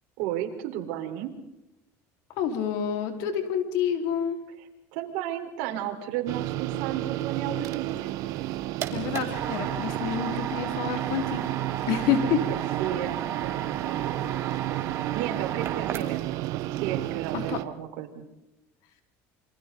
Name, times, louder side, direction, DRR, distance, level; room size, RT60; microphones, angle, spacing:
voice 1, 0.2-1.3 4.6-8.2 12.2-14.3 15.1-16.3 16.8-18.3, right 11 dB, 80° right, 3 dB, 4.3 m, -34 dB
voice 2, 2.4-4.4 8.9-11.4 11.9-12.4 17.5-17.6, left 8 dB, 75° left, 5 dB, 4.3 m, -28 dB
sound 1, 6.3-17.6, right 16 dB, 65° right, 1.2 m, -31 dB
sound 2, 8.3-16.4, right 9 dB, 45° right, 3.3 m, -35 dB
28.5 x 24.5 x 4.0 m, 0.94 s
cardioid pair, 130°, 6 cm